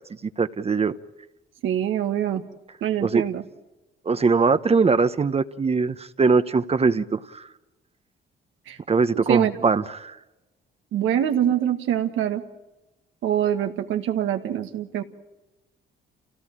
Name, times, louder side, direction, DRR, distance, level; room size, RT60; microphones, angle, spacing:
voice 1, 0.4-0.9 3.0-3.2 4.1-7.4 8.9-10.2, right 4 dB, 30° right, 0.9 m, -21 dB
voice 2, 1.6-2.4 2.8-3.4 8.7-8.8 9.1-9.6 10.9-12.4 13.2-15.0, right 10 dB, 85° right, 1.7 m, -24 dB
27.5 x 17.5 x 8.8 m
cardioid pair, 90°, 20 cm